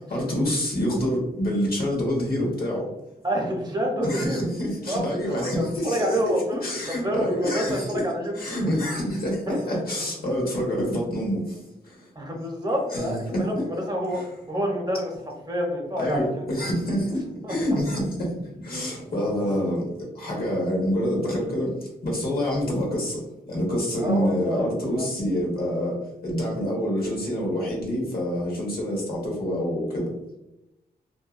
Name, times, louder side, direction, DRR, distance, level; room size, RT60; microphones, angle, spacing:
voice 1, 0.1-2.9 4.0-6.2 6.6-8.0 8.4-11.6 11.8-12.0 12.9-13.6 14.1-14.2 16.0-19.8 20.1-30.1, equal, 70° left, -2 dB, 1.0 m, -27 dB
voice 2, 3.2-4.4 4.9-8.7 9.5-9.8 10.7-10.8 12.1-14.2 14.5-15.1 15.5-16.5 17.4-17.8 19.4-19.5 24.0-25.1, equal, 25° right, 0 dB, 0.7 m, -28 dB
2.6 x 2.2 x 2.4 m, 0.90 s
cardioid pair, 75°, 16 cm